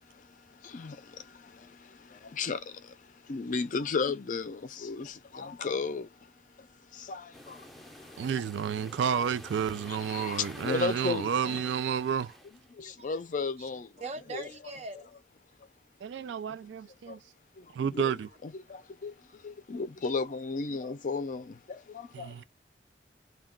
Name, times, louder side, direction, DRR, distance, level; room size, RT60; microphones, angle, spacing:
voice 1, 0.0-8.3 9.9-11.6 12.7-13.9 14.3-14.4 16.2-16.6 17.1-17.2 17.6-18.1 18.4-22.4, left 4 dB, 45° left, 0.4 m, -35 dB
sound 1, 7.3-12.7, left 1 dB, ahead, 0.6 m, -49 dB
voice 2, 8.2-12.3 16.0-17.2 17.7-18.3 22.1-22.4, right 7 dB, 85° right, 0.3 m, -31 dB
voice 3, 14.0-15.1, right 3 dB, 40° right, 0.7 m, -41 dB
2.2 x 2.2 x 3.5 m
head